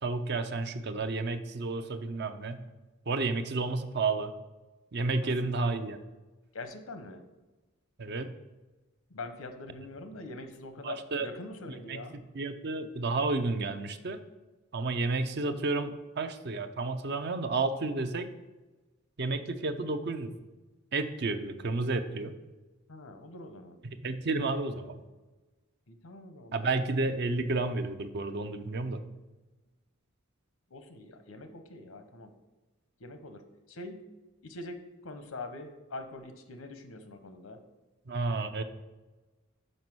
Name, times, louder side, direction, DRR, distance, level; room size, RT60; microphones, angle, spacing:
voice 1, 0.0-2.6 3.1-4.3 4.9-6.0 8.0-8.3 10.8-11.3 11.7-12.1 12.3-14.2 14.7-18.3 19.2-20.4 20.9-22.3 23.8-25.0 26.5-29.0 38.1-38.6, right 3 dB, 55° right, 9 dB, 0.6 m, -31 dB
voice 2, 6.5-7.2 9.1-12.1 22.9-23.8 25.9-26.9 30.7-32.3 33.0-33.4 33.7-34.0 34.4-34.8 35.0-37.6, left 2 dB, 85° left, 8 dB, 0.9 m, -44 dB
5.5 x 5.1 x 6.1 m, 1.2 s
head